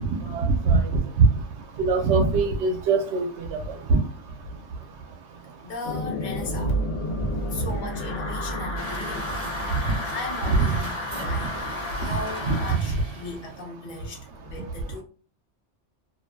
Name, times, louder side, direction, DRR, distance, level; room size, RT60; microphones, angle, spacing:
voice 1, 0.0-1.4 1.7-4.0 6.6-6.7 7.6-7.7 9.7-10.0 10.7-10.8 12.0-12.1 12.4-13.0, right 4 dB, 75° right, 0.9 m, -23 dB
voice 2, 5.6-6.8 7.5-9.5 10.0-11.0 11.2-15.0, left 2 dB, 50° left, 0.8 m, -37 dB
sound 1, 5.8-12.8, left 1 dB, 85° left, 1.0 m, -31 dB
Truck, 8.8-13.6, right 2 dB, 40° right, 0.6 m, -38 dB
2.4 x 2.2 x 2.2 m
omnidirectional pair, 1.2 m